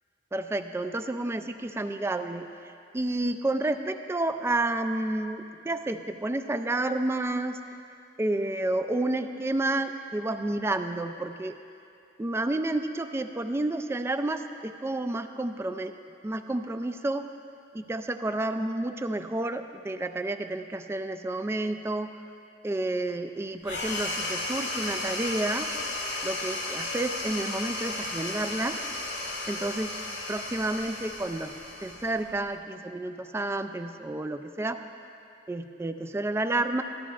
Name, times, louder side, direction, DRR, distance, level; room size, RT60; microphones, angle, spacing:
voice 1, 0.3-7.6 8.2-11.6 12.2-15.9 16.2-17.3 17.7-22.1 22.6-25.7 26.2-28.8 29.5-29.9 30.3-31.5 31.8-34.8 35.5-36.8, right 2 dB, 15° right, 8 dB, 0.3 m, -30 dB
sound 1, 23.6-32.5, left 2 dB, 90° left, 1.8 m, -34 dB
13.5 x 12.0 x 2.4 m, 2.5 s
head